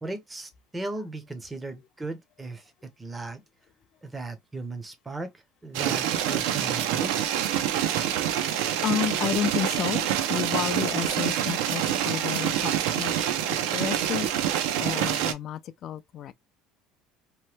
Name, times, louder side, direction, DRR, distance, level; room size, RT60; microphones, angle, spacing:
voice 1, 0.0-2.6 3.0-3.4 4.0-5.3 5.6-7.4, right 2 dB, 10° right, 0.6 m, -37 dB
sound 1, 5.7-15.3, right 10 dB, 80° right, 0.5 m, -26 dB
voice 2, 8.0-8.5 8.8-16.3, left 10 dB, 40° left, 0.3 m, -32 dB
2.9 x 2.1 x 3.1 m
cardioid pair, 150°, 0 cm